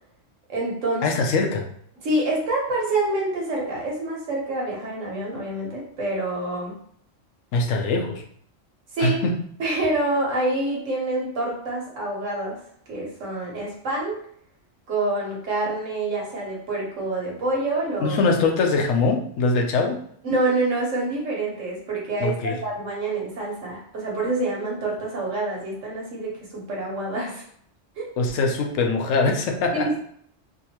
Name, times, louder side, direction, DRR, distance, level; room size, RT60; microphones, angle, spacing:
voice 1, 0.5-1.1 2.0-6.7 8.9-9.2 9.6-12.6 12.9-14.2 14.9-18.2 20.2-27.4 28.0-28.1 29.7-30.0, right 2 dB, 75° right, -3 dB, 1.5 m, -27 dB
voice 2, 1.0-1.7 7.5-8.2 9.0-9.3 18.0-20.0 22.2-22.6 28.2-29.9, left 3 dB, 85° left, 3 dB, 1.0 m, -22 dB
3.6 x 2.6 x 2.9 m, 0.65 s
omnidirectional pair, 1.3 m